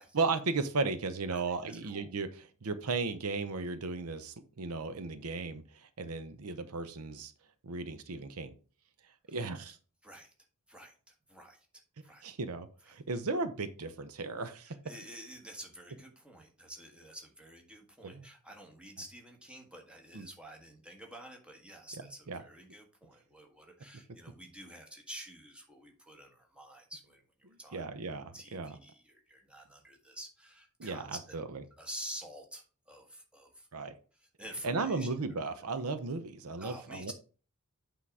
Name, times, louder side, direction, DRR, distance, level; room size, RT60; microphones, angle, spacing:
voice 1, 0.1-7.3 7.6-8.5 9.3-9.8 12.2-14.8 18.0-18.3 20.1-20.3 22.0-22.4 27.7-28.8 30.8-31.6 33.7-33.9 34.6-37.1, right 3 dB, 75° right, 10 dB, 0.7 m, -35 dB
voice 2, 1.3-2.1 9.3-9.4 10.0-10.3 10.7-10.9 11.3-11.7 12.0-12.2 14.7-27.8 28.1-31.4 31.8-33.7 34.2-35.1 35.7-35.8 36.6-37.1, right 1 dB, 5° right, 1 dB, 1.5 m, -49 dB
8.4 x 3.8 x 4.8 m, 0.38 s
head